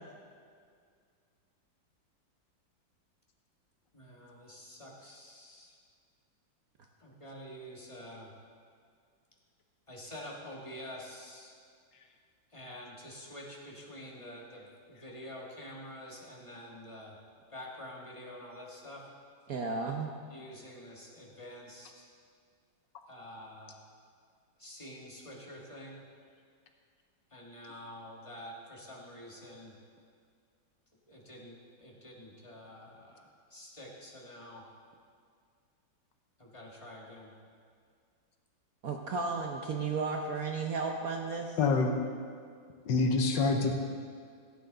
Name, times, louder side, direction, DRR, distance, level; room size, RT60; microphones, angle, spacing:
voice 1, 3.9-5.8 7.0-8.3 9.9-11.5 12.5-17.2 17.5-19.0 20.3-22.1 23.1-23.8 24.6-26.0 27.3-29.7 31.1-34.6 36.4-37.3, left 1 dB, 15° left, -3 dB, 1.5 m, -47 dB
voice 2, 19.5-20.1 38.8-41.6, right 4 dB, 60° right, 1 dB, 1.0 m, -34 dB
voice 3, 41.6-42.0 42.9-43.8, left 3 dB, 70° left, 4 dB, 1.5 m, -26 dB
16.0 x 8.9 x 3.9 m, 2.2 s
omnidirectional pair, 2.1 m